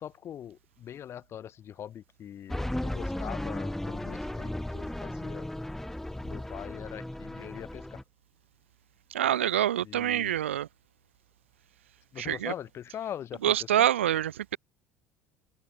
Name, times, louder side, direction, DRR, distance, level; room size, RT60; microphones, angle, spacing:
voice 1, 0.0-5.5 6.2-8.0 9.8-10.4 12.1-13.9, left 10 dB, 40° left, 1.9 m, -42 dB
sound 1, 2.5-8.0, left 1 dB, 5° left, 0.7 m, -35 dB
voice 2, 9.1-10.7 12.2-12.5 13.4-14.6, right 11 dB, 75° right, 0.6 m, -26 dB
open air
figure-of-eight pair, 65°, 7 cm